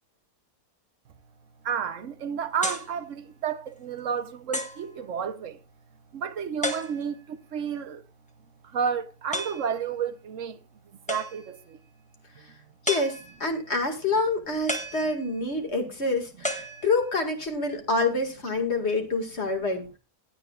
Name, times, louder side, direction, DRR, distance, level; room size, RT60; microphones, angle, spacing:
voice 1, 1.6-5.6 6.1-8.0 8.6-10.6 11.1-11.8, right 7 dB, 60° right, 1.1 m, -31 dB
sound 1, 2.6-3.0 3.7-3.8 4.5-4.9 6.6-7.3 9.3-9.7 11.1-11.6 12.8-13.5 14.7-15.5 16.4-17.3, left 1 dB, 5° left, 1.2 m, -33 dB
voice 2, 12.9-20.0, left 3 dB, 45° left, 2.2 m, -27 dB
16.0 x 9.6 x 2.4 m
omnidirectional pair, 1.6 m